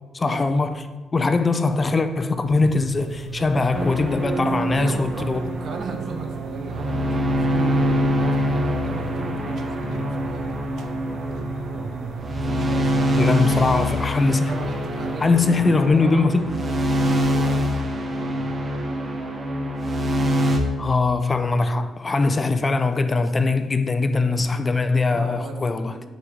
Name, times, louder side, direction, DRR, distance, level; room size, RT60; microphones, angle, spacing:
voice 1, 0.1-0.8 1.1-5.4 13.2-14.5 15.2-16.5 20.8-26.1, left 3 dB, 30° left, 0.4 m, -21 dB
sound 1, 2.5-15.7, right 7 dB, 80° right, 0.4 m, -35 dB
sound 2, 3.7-20.6, equal, 35° right, 1.0 m, -25 dB
voice 2, 4.8-10.4 10.7-10.9 12.4-13.4 13.9-16.3 17.0-19.0 25.1-26.1, right 3 dB, 60° right, 0.9 m, -37 dB
5.1 x 4.8 x 4.9 m
cardioid pair, 90°, 0 cm